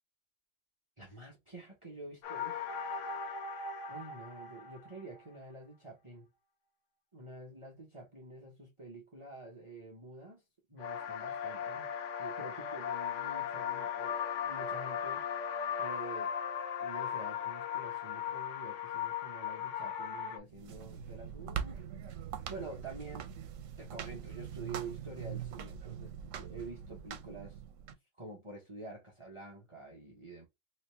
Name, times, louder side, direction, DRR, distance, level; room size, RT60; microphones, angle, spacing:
voice 1, 1.0-3.2 3.9-6.3 7.1-10.4 10.7-11.9 12.2-15.4 15.8-16.3 16.8-21.9 22.5-23.3 23.8-27.6 28.2-30.5, right 2 dB, 25° right, 1.0 m, -48 dB
sound 1, 2.2-5.3 10.8-20.4, left 7 dB, 75° left, 1.0 m, -37 dB
sound 2, 20.5-27.9, right 8 dB, 90° right, 1.0 m, -42 dB
3.2 x 2.9 x 3.1 m
omnidirectional pair, 1.3 m